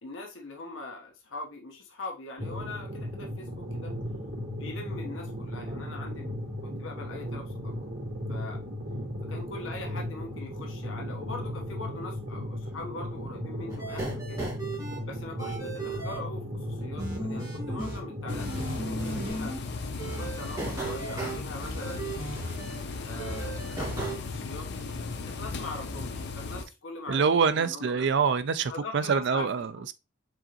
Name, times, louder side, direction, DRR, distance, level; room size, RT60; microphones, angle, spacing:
voice 1, 0.0-3.9 4.6-6.3 6.6-7.7 8.3-8.6 9.3-14.5 15.0-19.6 20.2-22.1 23.0-24.8 25.2-28.1 28.7-29.7, left 3 dB, 75° left, 0.9 m, -42 dB
sound 1, 2.4-19.3, equal, 75° right, 2.0 m, -36 dB
sound 2, 13.7-15.0 15.4-16.2 17.0-18.0 18.3-19.6 20.0-22.8 23.2-24.2, right 2 dB, 20° right, 2.0 m, -36 dB
sound 3, 18.3-26.6, left 4 dB, 55° left, 0.6 m, -36 dB
voice 2, 27.1-29.9, right 5 dB, 60° right, 0.4 m, -25 dB
4.8 x 3.8 x 2.9 m
head